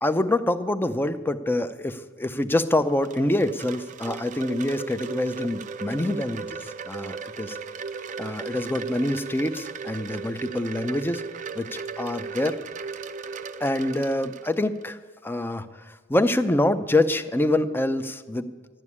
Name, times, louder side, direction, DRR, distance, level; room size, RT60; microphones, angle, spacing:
voice 1, 0.0-7.6 8.2-11.2 11.6-12.6 13.6-18.5, left 1 dB, 10° left, 11 dB, 0.6 m, -26 dB
Wind chime, 2.6-14.8, right 5 dB, 40° right, 0.5 m, -36 dB
12.0 x 9.1 x 9.8 m, 1.4 s
head